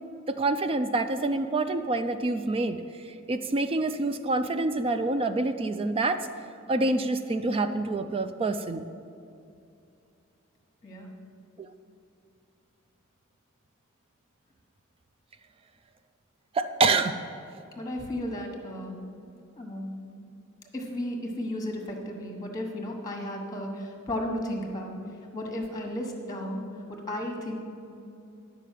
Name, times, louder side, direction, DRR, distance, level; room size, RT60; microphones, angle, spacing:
voice 1, 0.3-2.8 3.3-6.3 6.7-8.9 11.6-11.7 16.5-17.1, right 2 dB, 25° right, 9 dB, 0.3 m, -26 dB
voice 2, 10.8-11.1 17.7-19.1 19.6-19.9 20.7-25.0 25.3-26.6 26.9-27.6, left 1 dB, 15° left, 2 dB, 1.2 m, -34 dB
10.5 x 5.0 x 7.5 m, 2.6 s
head